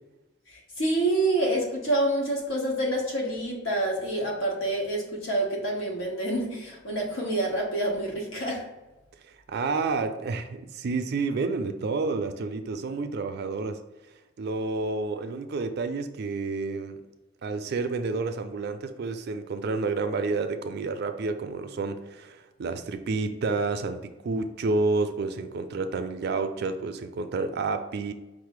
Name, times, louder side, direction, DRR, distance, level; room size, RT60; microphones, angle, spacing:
voice 1, 0.5-8.7, right 1 dB, 80° left, -1 dB, 1.2 m, -27 dB
voice 2, 9.5-13.8 14.4-17.0 17.4-28.1, right 3 dB, 55° right, 8 dB, 0.4 m, -29 dB
5.5 x 2.0 x 4.7 m, 1.0 s
head